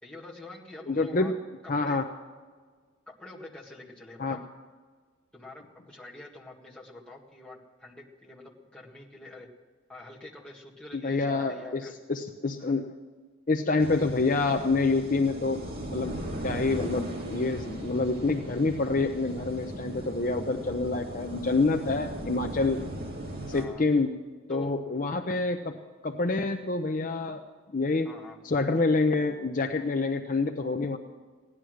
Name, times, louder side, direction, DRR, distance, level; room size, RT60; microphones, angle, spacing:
voice 1, 0.0-1.3 1.6-2.0 3.2-4.5 5.3-9.5 9.9-11.9 23.5-23.8 24.5-24.8 28.1-28.4, left 2 dB, 5° left, -4 dB, 1.8 m, -46 dB
voice 2, 0.9-1.3 1.7-2.1 4.2-4.4 10.9-11.8 12.1-12.9 13.5-15.6 15.9-16.2 16.4-22.8 23.5-24.1 24.5-25.8 26.0-27.4 27.7-28.1 28.4-31.0, left 3 dB, 40° left, 5 dB, 0.6 m, -27 dB
sound 1, 13.8-23.7, right 1 dB, 50° right, 2.2 m, -38 dB
16.0 x 11.0 x 6.4 m, 1.5 s
head